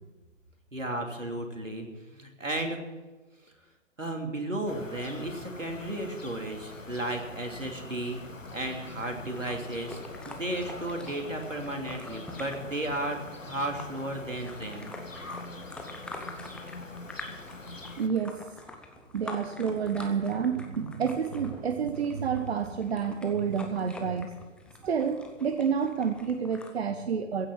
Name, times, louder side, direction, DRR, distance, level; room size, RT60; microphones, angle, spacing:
voice 1, 0.7-2.8 4.0-8.2 8.5-14.9, right 1 dB, 85° right, 3 dB, 3.1 m, -34 dB
sound 1, 4.7-18.1, left 2 dB, 90° left, 1.5 m, -43 dB
sound 2, 8.4-26.7, left 2 dB, 5° left, 0.8 m, -47 dB
voice 2, 18.0-18.8 19.1-24.3 24.8-27.5, right 6 dB, 55° right, 8 dB, 1.1 m, -29 dB
15.5 x 9.0 x 7.4 m, 1.2 s
figure-of-eight pair, 125°, 37 cm